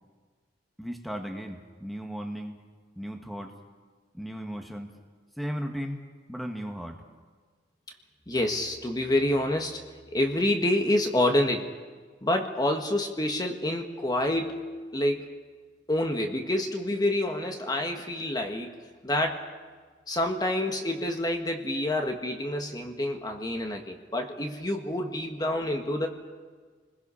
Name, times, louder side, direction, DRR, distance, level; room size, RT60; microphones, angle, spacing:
voice 1, 0.8-2.6 3.0-3.5 4.1-4.9 5.4-6.0 6.3-7.0, equal, ahead, 3 dB, 1.5 m, -36 dB
voice 2, 8.3-9.8 10.1-11.7 12.2-14.6 14.9-15.2 15.9-18.8 19.0-19.4 20.1-26.1, left 1 dB, 20° left, 4 dB, 1.5 m, -27 dB
29.5 x 20.5 x 5.7 m, 1.5 s
head